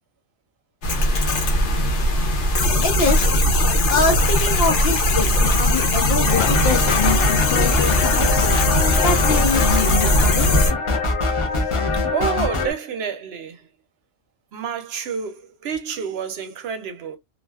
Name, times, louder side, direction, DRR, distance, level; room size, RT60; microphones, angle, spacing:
sound 1, 0.8-10.7, left 1 dB, 90° left, 1.0 m, -19 dB
voice 1, 2.8-3.3 3.9-8.5 9.0-10.5, left 4 dB, 60° left, 0.8 m, -24 dB
sound 2, 6.3-12.7, left 3 dB, 45° left, 0.4 m, -22 dB
voice 2, 11.5-13.7 14.5-17.2, right 7 dB, 70° right, 0.8 m, -29 dB
2.4 x 2.2 x 2.2 m
omnidirectional pair, 1.2 m